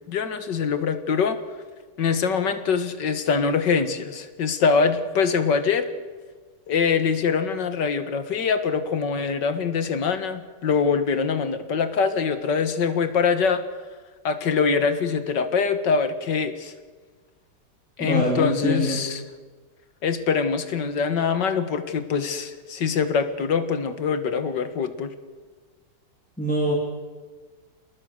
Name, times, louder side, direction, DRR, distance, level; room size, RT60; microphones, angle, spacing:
voice 1, 0.1-1.4 2.0-5.9 6.7-13.6 14.2-16.7 18.0-19.2 20.0-25.1, left 5 dB, 75° left, 10 dB, 2.2 m, -23 dB
voice 2, 18.0-19.0 26.4-26.7, equal, 5° left, -3 dB, 3.6 m, -24 dB
28.0 x 19.5 x 6.5 m, 1.4 s
omnidirectional pair, 1.9 m